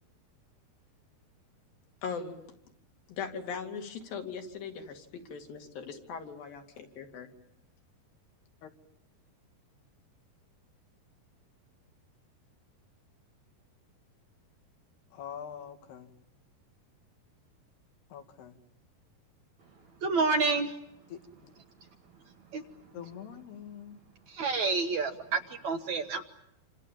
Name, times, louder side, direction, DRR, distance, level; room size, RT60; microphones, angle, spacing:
voice 1, 2.0-2.4 3.1-7.3, left 6 dB, 65° left, 4 dB, 4.2 m, -39 dB
voice 2, 15.1-16.1 18.1-18.5 21.1-21.5 22.9-24.0, left 8 dB, 80° left, 6 dB, 4.0 m, -44 dB
voice 3, 20.0-20.7 22.5-22.6 24.3-26.2, right 4 dB, 60° right, 5 dB, 2.2 m, -28 dB
28.5 x 27.0 x 7.4 m, 0.82 s
omnidirectional pair, 4.6 m